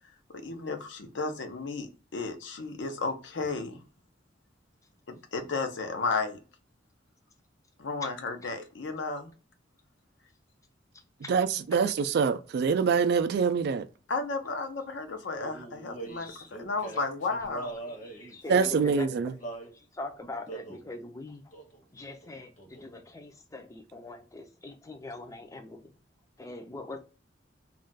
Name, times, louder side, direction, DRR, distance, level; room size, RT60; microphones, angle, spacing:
voice 1, 0.3-3.8 5.1-6.4 7.8-9.3 14.1-17.7, left 3 dB, 70° left, 0.6 m, -33 dB
voice 2, 11.3-13.9 18.5-19.3, right 5 dB, 60° right, 0.3 m, -25 dB
Male singing, 15.3-19.7 20.5-20.9 21.5-21.8 22.1-23.0, right 2 dB, 40° left, 0.8 m, -42 dB
voice 3, 16.1-16.5 17.6-19.3 19.6-21.4 21.9-25.9 26.4-27.0, left 2 dB, 15° left, 0.4 m, -42 dB
2.4 x 2.2 x 3.9 m
head